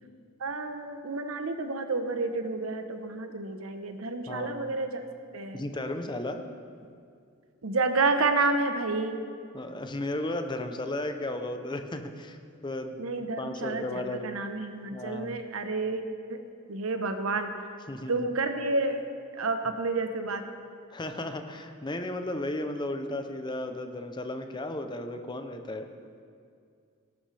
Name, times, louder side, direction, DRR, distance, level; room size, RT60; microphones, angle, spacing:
voice 1, 0.4-5.0 5.3-5.6 7.6-9.2 13.0-16.4 16.7-17.6 18.1-19.1 19.3-20.5, right 3 dB, 75° right, 7 dB, 1.0 m, -30 dB
voice 2, 4.3-4.7 5.5-6.5 9.5-12.4 12.6-13.0 13.4-14.4 14.9-15.4 17.9-18.2 20.9-25.9, left 1 dB, 20° left, 7 dB, 0.7 m, -34 dB
18.5 x 11.5 x 3.4 m, 2.3 s
head